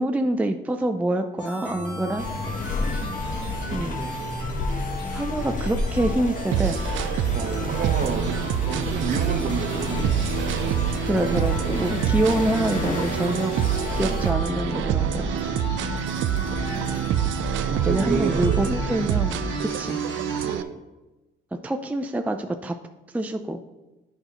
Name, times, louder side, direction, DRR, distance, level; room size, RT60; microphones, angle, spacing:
voice 1, 0.0-2.3 3.7-4.0 5.1-6.8 11.0-13.5 13.9-15.4 17.9-20.0 21.5-22.8 23.1-23.6, right 1 dB, 5° right, 6 dB, 0.4 m, -26 dB
sound 1, 1.4-20.6, left 2 dB, 65° left, 2.1 m, -35 dB
sound 2, 2.2-14.3, left 2 dB, 40° left, 1.1 m, -32 dB
voice 2, 3.5-4.4 7.3-8.4 8.6-10.1 14.0-14.2 16.3-17.2 17.6-18.6 20.4-20.8, right 5 dB, 45° right, 6 dB, 1.0 m, -31 dB
sound 3, 6.5-20.6, right 9 dB, 75° right, 0.4 m, -26 dB
9.2 x 5.5 x 2.9 m, 1.1 s
cardioid pair, 90°, 20 cm